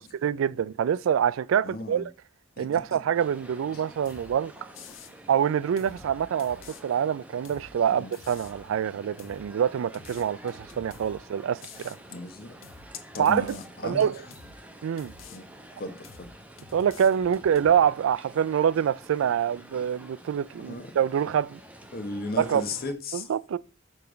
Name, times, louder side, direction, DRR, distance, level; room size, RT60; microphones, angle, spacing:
voice 1, 0.0-2.1 2.6-4.5 5.3-12.0 13.2-13.6 13.8-14.2 14.8-15.1 16.7-21.6 22.4-22.6 23.1-23.6, right 8 dB, 85° right, 0.3 m, -25 dB
voice 2, 1.6-2.0 2.6-2.8 3.7-3.8 7.9-8.1 12.1-12.6 13.1-14.1 15.3-15.5 15.8-16.3 20.7-20.9 21.9-23.3, left 2 dB, 50° left, 1.0 m, -36 dB
sound 1, 3.1-22.9, right 1 dB, 5° right, 0.8 m, -49 dB
sound 2, 4.1-4.3 4.7-5.1 5.8-6.8 7.5-7.7 8.1-8.6 9.2-9.5 9.9-11.2 11.6-12.0 12.6-12.9 13.3-13.7 14.3-14.6 15.0-15.4 16.0-16.3 16.6-17.8, left 5 dB, 80° left, 0.7 m, -48 dB
6.9 x 3.2 x 5.0 m
head